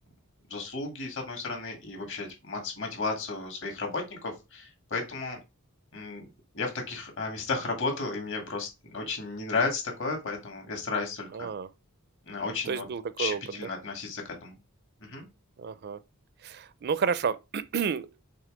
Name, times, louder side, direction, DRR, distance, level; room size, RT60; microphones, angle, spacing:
voice 1, 0.5-5.4 5.9-6.3 6.5-11.5 12.3-12.9 13.2-14.6 15.0-15.3, left 3 dB, 55° left, 2.3 m, -33 dB
voice 2, 11.3-11.7 12.7-13.7 15.6-16.0 16.4-18.2, right 6 dB, 45° right, 0.4 m, -31 dB
6.6 x 3.3 x 5.0 m
head